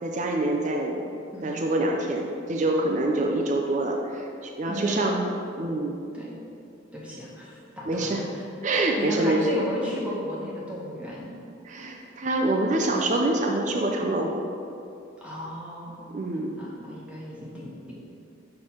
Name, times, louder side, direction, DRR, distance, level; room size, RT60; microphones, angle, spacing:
voice 1, 0.0-1.0 1.4-6.0 7.9-8.2 8.6-9.5 11.7-14.4 16.1-16.5, right 2 dB, 40° right, 1 dB, 0.5 m, -26 dB
voice 2, 1.3-1.6 4.7-5.1 6.1-6.3 6.9-8.1 9.0-11.3 15.2-17.9, equal, 5° right, -6 dB, 1.1 m, -34 dB
6.2 x 3.2 x 5.7 m, 2.5 s
head